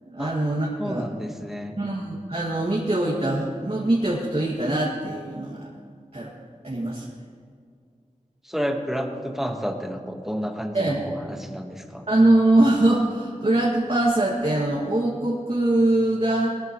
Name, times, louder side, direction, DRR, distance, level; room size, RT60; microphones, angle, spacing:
voice 1, 0.1-1.0 1.8-5.7 6.1-6.3 6.6-7.0 10.7-11.2 12.1-16.6, right 1 dB, 50° right, -5 dB, 2.3 m, -22 dB
voice 2, 0.8-1.7 8.4-12.0, equal, 5° right, 3 dB, 1.5 m, -30 dB
21.0 x 14.0 x 3.2 m, 2.1 s
wide cardioid pair, 65°, 13 cm